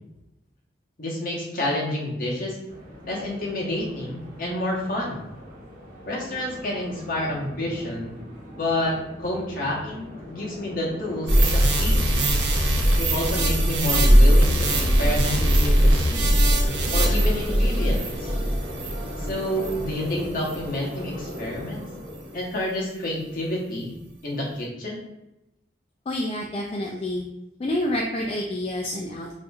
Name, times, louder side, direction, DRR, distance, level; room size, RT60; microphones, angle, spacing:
voice 1, 1.0-2.6 3.0-5.3 6.1-8.1 8.5-12.1 13.0-16.4 16.9-18.3 19.2-21.9 22.3-23.9 24.2-25.0, left 1 dB, 50° left, -3 dB, 1.0 m, -29 dB
sound 1, 2.7-22.5, equal, 50° right, 1.1 m, -38 dB
sound 2, 11.3-19.9 20.4-20.6, equal, 80° right, 0.6 m, -20 dB
voice 2, 26.1-27.2 27.6-29.4, left 1 dB, 35° left, 0 dB, 0.3 m, -28 dB
5.0 x 2.6 x 2.3 m, 0.92 s
head